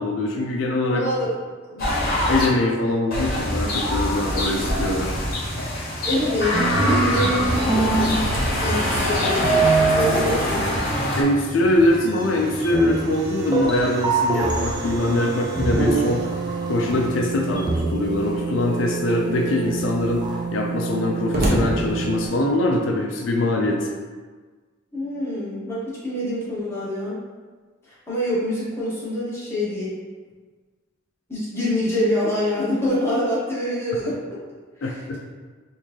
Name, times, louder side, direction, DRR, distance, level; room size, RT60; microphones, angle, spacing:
voice 1, 0.0-1.0 2.3-5.2 11.2-16.2 16.7-23.9 34.8-35.2, left 1 dB, 80° left, 1 dB, 0.4 m, -23 dB
voice 2, 0.9-1.4 1.7-2.2 6.0-8.2 8.6-10.8 24.9-27.2 28.1-29.9 31.3-34.2 34.8-35.2, left 1 dB, 15° left, -9 dB, 1.1 m, -26 dB
sound 1, 1.8-2.5 3.1-11.2, left 1 dB, 50° left, 1.0 m, -24 dB
sound 2, 6.5-22.3, right 4 dB, 20° right, 0.3 m, -26 dB
Slam, 7.9-10.7 11.0-11.1 11.6-17.2 18.1-18.7 19.2-19.3 19.5-22.6, right 1 dB, 55° right, 0.6 m, -33 dB
3.6 x 2.6 x 3.1 m, 1.4 s
head